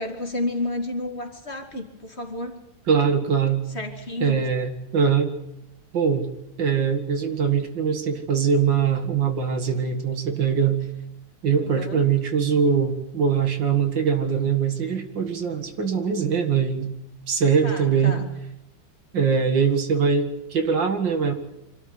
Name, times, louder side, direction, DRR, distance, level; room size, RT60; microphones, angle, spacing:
voice 1, 0.0-2.6 3.7-4.5 11.6-12.1 17.6-18.3, left 2 dB, 35° left, 4 dB, 2.5 m, -31 dB
voice 2, 2.9-3.6 4.2-5.3 5.9-6.3 6.6-10.8 11.4-16.9 17.3-18.1 19.1-21.3, right 6 dB, 75° right, 7 dB, 2.6 m, -22 dB
25.0 x 13.0 x 9.5 m, 0.88 s
omnidirectional pair, 2.0 m